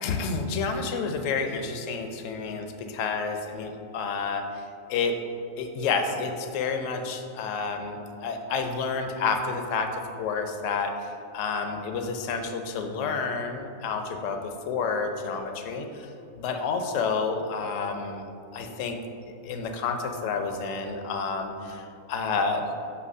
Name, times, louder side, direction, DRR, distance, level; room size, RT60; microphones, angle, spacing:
voice 1, 0.0-4.4 4.9-5.2 5.6-16.1 16.4-18.3 18.5-19.0 19.4-22.7, left 4 dB, 65° left, 5 dB, 0.9 m, -29 dB
8.1 x 2.9 x 5.3 m, 2.6 s
omnidirectional pair, 1.7 m